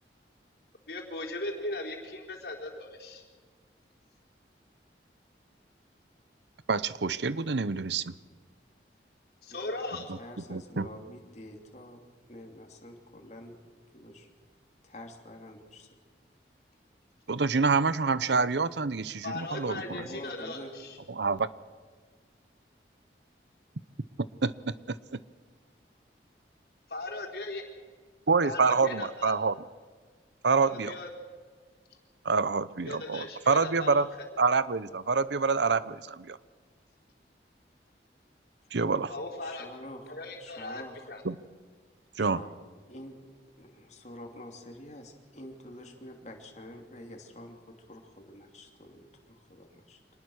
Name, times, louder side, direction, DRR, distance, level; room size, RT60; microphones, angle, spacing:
voice 1, 0.9-3.2 9.4-10.1 19.2-20.6 26.9-27.6 28.4-29.3 30.6-31.1 32.9-34.1 39.1-39.7 40.1-40.8 41.1-41.2, left 2 dB, 60° left, 1 dB, 4.0 m, -38 dB
voice 2, 6.7-8.0 10.1-10.2 10.5-10.9 17.3-19.8 21.1-21.5 24.4-25.2 28.3-29.6 30.4-30.9 32.2-34.1 34.4-36.4 38.7-39.1 41.2-41.4 42.2-42.4, right 4 dB, 75° right, 16 dB, 0.8 m, -27 dB
voice 3, 10.2-12.0 12.3-13.6 13.9-14.3 14.8-15.9 19.3-19.4 19.8-20.7 39.4-41.1 42.2-42.6 42.9-43.1 43.6-50.0, left 1 dB, 40° left, 3 dB, 3.0 m, -47 dB
25.5 x 19.5 x 6.4 m, 1.5 s
head